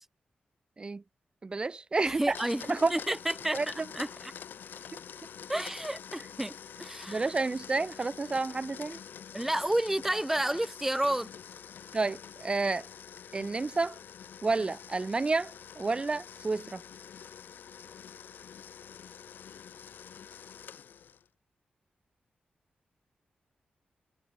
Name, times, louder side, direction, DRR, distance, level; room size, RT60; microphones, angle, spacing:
voice 1, 1.4-2.4 2.7-2.9 3.5-3.9 7.1-9.0 11.9-12.9 13.3-14.0 14.4-16.8, right 3 dB, 30° right, 0.7 m, -30 dB
voice 2, 2.0-4.3 5.5-6.5 6.8-7.3 9.3-11.3, right 1 dB, 10° right, 1.4 m, -31 dB
Domestic sounds home sounds, 2.1-21.3, left 8 dB, 85° left, 1.5 m, -47 dB
wide cardioid pair, 125°, 3 cm